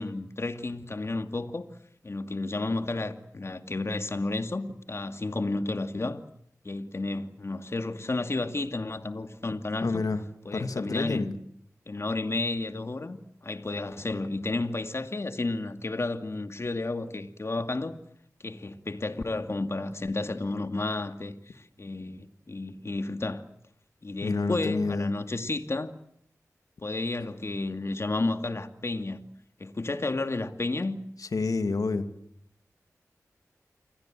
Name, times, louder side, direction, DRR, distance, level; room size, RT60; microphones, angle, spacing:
voice 1, 0.0-1.7 2.0-6.2 6.6-10.0 10.4-11.3 11.9-13.2 13.4-18.0 18.4-23.4 24.0-25.9 26.8-29.3 29.6-31.0, left 2 dB, 45° left, 2.5 m, -32 dB
voice 2, 9.8-10.2 10.5-11.3 24.2-25.1 31.2-32.1, left 3 dB, 75° left, 2.4 m, -28 dB
28.5 x 23.5 x 7.7 m
wide cardioid pair, 55°, 6 cm